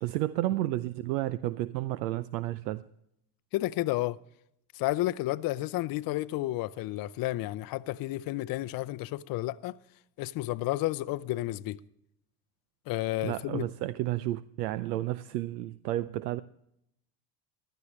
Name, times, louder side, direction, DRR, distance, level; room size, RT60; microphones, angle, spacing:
voice 1, 0.0-2.9 13.2-16.4, right 15 dB, 85° right, 0.6 m, -31 dB
voice 2, 3.5-4.2 4.7-9.7 10.2-11.8 12.9-13.7, left 17 dB, 45° left, 0.6 m, -31 dB
15.5 x 12.0 x 3.1 m
hypercardioid pair, 85°, 48 cm